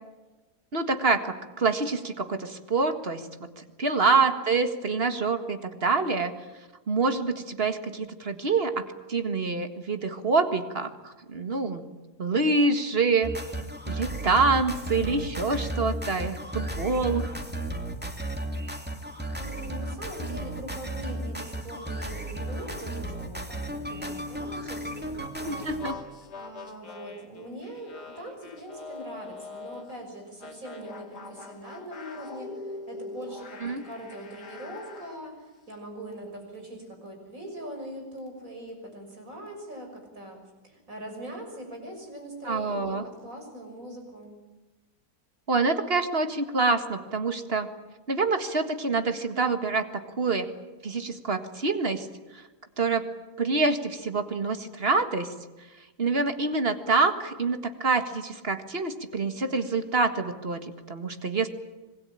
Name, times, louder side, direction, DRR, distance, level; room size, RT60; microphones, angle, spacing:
voice 1, 0.7-6.3 6.9-8.8 9.1-11.8 12.2-13.3 13.9-17.3 25.5-26.0 33.6-33.8 42.4-43.0 45.5-47.7 48.1-49.9 50.2-50.5 50.8-52.1 52.3-52.4 52.8-53.0 53.4-55.3 56.0-61.5, right 3 dB, 35° right, 8 dB, 1.9 m, -26 dB
voice 2, 4.1-4.5 19.0-25.7 26.3-40.4 40.6-44.4, right 1 dB, 55° right, 3 dB, 6.7 m, -42 dB
sound 1, 13.2-25.9, right 1 dB, 5° right, 2.5 m, -34 dB
sound 2, 25.6-30.0 30.4-35.2, left 3 dB, 80° left, 2.8 m, -43 dB
25.5 x 20.5 x 9.0 m, 1.1 s
omnidirectional pair, 1.7 m